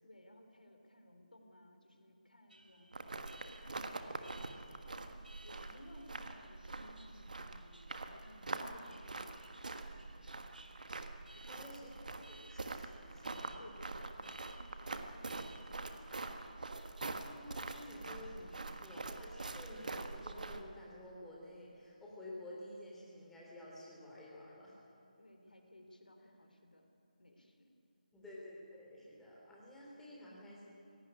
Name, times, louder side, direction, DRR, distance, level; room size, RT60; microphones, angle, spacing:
voice 1, 0.0-10.5 11.3-12.3 13.6-16.2 25.2-26.9 27.2-27.7, equal, 80° left, 5 dB, 3.3 m, -59 dB
Alarm, 2.5-20.3, right 2 dB, 85° right, 1.9 m, -63 dB
sound 1, 2.9-20.6, right 3 dB, 65° right, 1.5 m, -45 dB
voice 2, 11.5-11.9 12.3-13.6 17.1-24.8 28.1-30.7, left 1 dB, 5° left, -6 dB, 3.5 m, -52 dB
17.5 x 15.5 x 9.7 m, 2.8 s
figure-of-eight pair, 155°, 5 cm